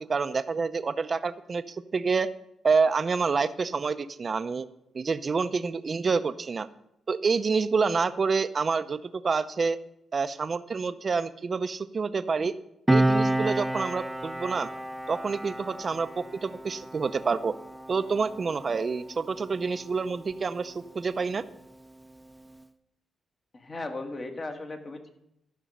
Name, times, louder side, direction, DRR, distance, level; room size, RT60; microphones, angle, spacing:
voice 1, 0.0-2.3 2.6-4.6 4.9-6.7 7.1-9.8 10.1-12.5 12.9-14.7 15.1-17.5 17.9-21.4, right 5 dB, 45° right, 12 dB, 0.6 m, -28 dB
Piano, 12.9-19.9 20.2-20.4, right 1 dB, 5° right, 0.7 m, -30 dB
voice 2, 23.5-25.1, left 2 dB, 35° left, 5 dB, 1.5 m, -37 dB
12.5 x 6.1 x 5.4 m, 0.82 s
cardioid pair, 75°, 0 cm